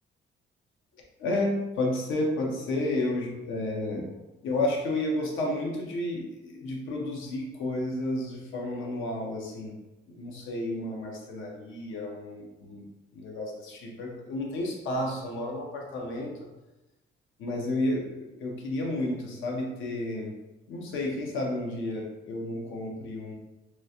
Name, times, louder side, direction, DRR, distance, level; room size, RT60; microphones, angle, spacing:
voice 1, 1.2-4.1 4.4-9.7 10.1-12.8 13.1-16.3 17.4-20.3 20.7-23.3, left 1 dB, 80° left, -1 dB, 0.7 m, -31 dB
3.0 x 2.4 x 2.7 m, 1.0 s
cardioid pair, 90°, 20 cm